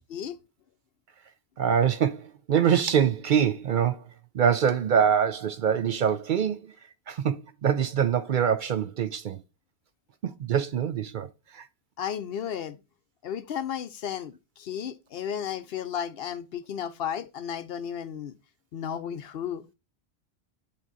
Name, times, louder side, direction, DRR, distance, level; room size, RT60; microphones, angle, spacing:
voice 1, 1.6-4.0 4.3-6.7 7.1-9.4 10.2-11.3 11.5-11.7, right 8 dB, 60° right, 0.6 m, -24 dB
voice 2, 12.0-12.8 13.2-18.3 18.7-19.6, left 8 dB, 70° left, 0.8 m, -33 dB
8.8 x 3.0 x 3.9 m
omnidirectional pair, 1.1 m